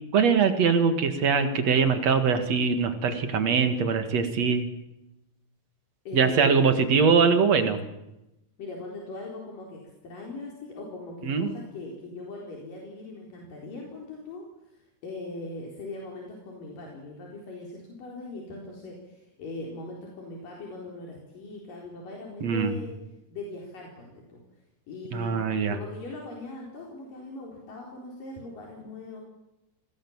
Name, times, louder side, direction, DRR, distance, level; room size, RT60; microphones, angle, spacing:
voice 1, 0.1-4.7 6.1-7.8 11.2-11.5 22.4-22.8 25.1-25.8, right 5 dB, 55° right, 8 dB, 2.9 m, -22 dB
voice 2, 6.1-7.0 8.6-23.0 23.3-24.4 24.9-29.2, left 2 dB, 80° left, -1 dB, 5.8 m, -40 dB
26.0 x 20.0 x 7.3 m, 0.92 s
omnidirectional pair, 3.8 m